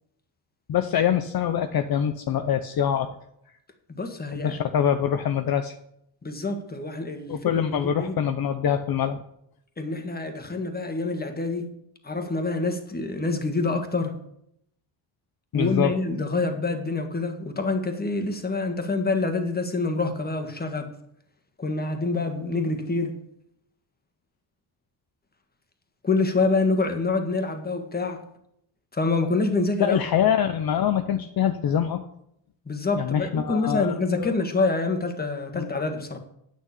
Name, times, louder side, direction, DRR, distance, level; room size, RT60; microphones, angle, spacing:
voice 1, 0.7-3.1 4.3-5.8 7.3-9.2 15.5-16.0 29.8-32.0 33.0-34.3 35.5-35.7, left 9 dB, 55° left, 8 dB, 0.8 m, -24 dB
voice 2, 3.9-4.6 6.2-7.5 7.8-8.1 9.8-11.7 12.0-14.1 15.5-20.9 21.6-23.1 26.0-28.2 28.9-30.0 32.6-36.2, left 3 dB, 20° left, 6 dB, 1.7 m, -26 dB
9.3 x 6.3 x 8.6 m, 0.74 s
cardioid pair, 105°, 44 cm